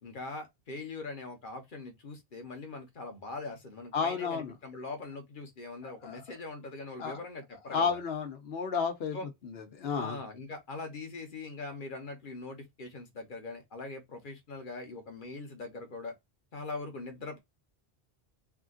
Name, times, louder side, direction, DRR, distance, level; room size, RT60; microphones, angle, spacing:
voice 1, 0.0-8.0 9.1-9.3 10.0-16.1 16.5-17.4, left 3 dB, 55° left, 1.1 m, -42 dB
voice 2, 3.9-4.5 5.8-6.2 7.0-7.2 7.7-10.2, left 5 dB, 80° left, 1.1 m, -32 dB
3.5 x 2.4 x 2.4 m
omnidirectional pair, 1.0 m